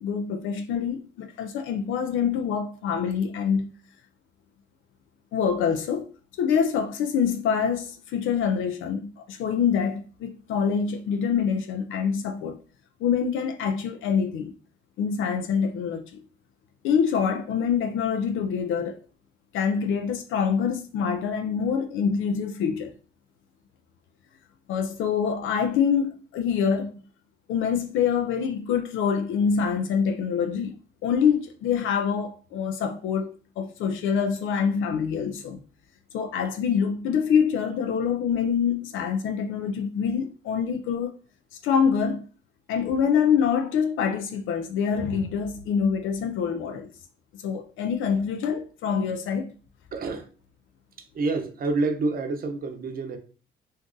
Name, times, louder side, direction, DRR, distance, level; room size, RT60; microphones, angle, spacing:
voice 1, 0.0-3.7 5.3-12.6 13.0-14.5 15.0-16.2 16.8-19.0 19.5-22.9 24.7-26.9 27.5-35.6 36.1-41.2 41.6-42.2 42.7-46.9 47.4-49.5, left 7 dB, 85° left, 0.4 m, -25 dB
voice 2, 49.9-50.3 51.0-53.2, right 3 dB, 45° right, 0.7 m, -28 dB
2.6 x 2.4 x 3.7 m
cardioid pair, 90°, 20 cm